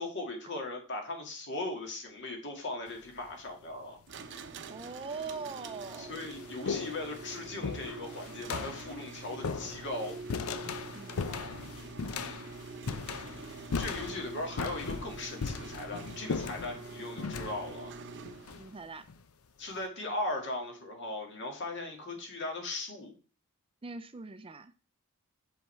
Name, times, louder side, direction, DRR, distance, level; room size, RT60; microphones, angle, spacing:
voice 1, 0.0-4.0 6.0-10.2 12.1-12.4 13.8-17.9 19.6-23.1, left 2 dB, 55° left, 2.1 m, -38 dB
sound 1, 2.9-3.3 4.3-4.4 5.2-5.3 5.7-19.2, left 5 dB, 75° left, 0.6 m, -38 dB
sound 2, 4.1-18.8, right 4 dB, 55° right, 0.7 m, -45 dB
voice 2, 4.7-6.2 10.9-11.7 18.5-19.1 23.8-24.7, right 4 dB, 25° right, 0.5 m, -42 dB
7.3 x 5.5 x 4.4 m
head